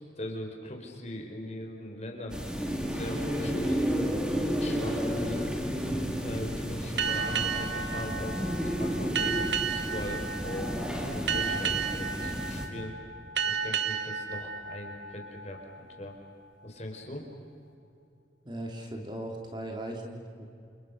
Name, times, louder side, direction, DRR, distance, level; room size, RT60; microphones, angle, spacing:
voice 1, 0.2-2.4 2.9-3.9 4.4-5.6 6.2-8.4 8.8-12.9 13.4-15.6 16.0-16.1 16.6-17.3, left 1 dB, 35° left, 2 dB, 4.4 m, -40 dB
sound 1, 2.3-12.7, equal, 5° right, 2.5 m, -32 dB
sound 2, 7.0-16.1, right 6 dB, 75° right, 1.5 m, -33 dB
sound 3, 7.1-12.9, left 1 dB, 45° right, 4.5 m, -49 dB
voice 2, 18.4-20.5, right 1 dB, 25° right, 1 dB, 3.1 m, -38 dB
29.5 x 29.0 x 6.5 m, 2.5 s
head